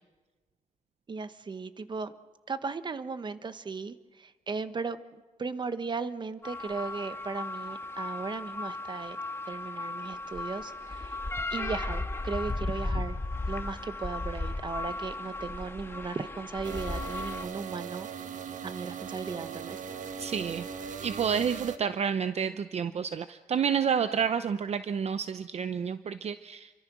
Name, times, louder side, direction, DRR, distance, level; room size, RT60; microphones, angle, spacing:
voice 1, 1.1-2.1 2.5-5.0 5.4-9.2 9.5-11.2 11.5-13.2 13.5-18.1 18.6-19.8, right 4 dB, 35° right, 12 dB, 1.1 m, -36 dB
sound 1, 6.4-17.4, left 2 dB, 20° left, 1.6 m, -35 dB
sound 2, 16.6-21.8, right 7 dB, 70° right, 1.4 m, -39 dB
voice 2, 20.2-20.7 21.0-26.7, right 7 dB, 50° right, 11 dB, 0.7 m, -29 dB
28.5 x 24.5 x 6.2 m, 1.3 s
wide cardioid pair, 140°, 13 cm